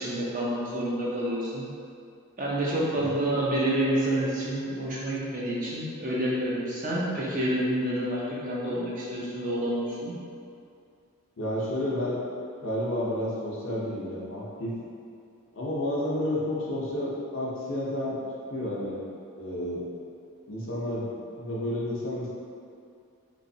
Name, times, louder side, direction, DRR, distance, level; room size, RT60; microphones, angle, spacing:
voice 1, 0.0-1.6 2.4-10.1, right 1 dB, 40° right, -6 dB, 0.6 m, -28 dB
voice 2, 11.4-12.2 12.6-14.8 15.5-18.2 18.5-19.0 19.4-19.8 20.5-21.1 21.4-22.3, left 1 dB, 60° left, -6 dB, 0.7 m, -30 dB
3.1 x 3.0 x 2.7 m, 2.4 s
head